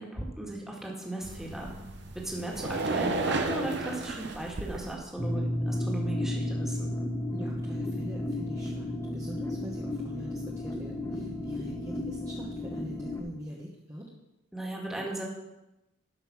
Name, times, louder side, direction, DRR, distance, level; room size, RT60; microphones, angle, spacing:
voice 1, 0.0-1.7 2.2-6.9 14.5-15.2, right 1 dB, ahead, -2 dB, 2.0 m, -37 dB
sound 1, 1.2-4.9, right 3 dB, 65° right, 1.1 m, -33 dB
sound 2, 5.2-13.2, left 1 dB, 15° left, 1.1 m, -33 dB
voice 2, 7.3-14.1, equal, 20° right, -4 dB, 1.2 m, -43 dB
12.0 x 5.5 x 6.0 m, 0.95 s
head